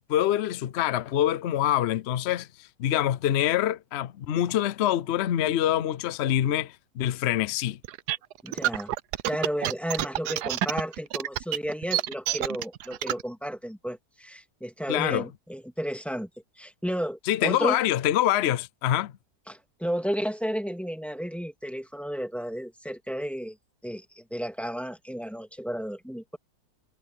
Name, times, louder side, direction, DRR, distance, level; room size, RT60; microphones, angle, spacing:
voice 1, 0.1-2.5 2.8-7.8 14.9-15.3 17.3-19.1, left 12 dB, 60° left, 0.7 m, -25 dB
sound 1, 7.8-13.2, right 13 dB, 90° right, 1.2 m, -28 dB
voice 2, 8.4-8.9 9.2-16.3 16.6-17.8 19.5-23.6 23.8-26.4, equal, ahead, 2.4 m, -33 dB
omnidirectional pair, 1.7 m